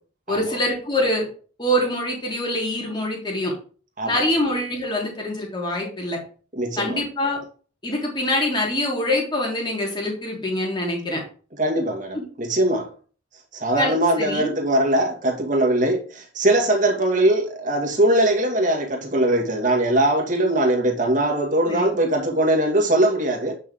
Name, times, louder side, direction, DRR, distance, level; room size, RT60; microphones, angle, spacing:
voice 1, 0.3-1.3 1.6-3.5 4.0-6.2 6.8-7.4 7.8-11.2 12.1-12.2 13.8-14.5 21.7-21.9, left 1 dB, 25° left, 3.5 m, -24 dB
voice 2, 6.6-7.0 11.6-12.9 13.5-23.6, right 1 dB, 40° right, 2.3 m, -21 dB
9.1 x 6.4 x 3.8 m
head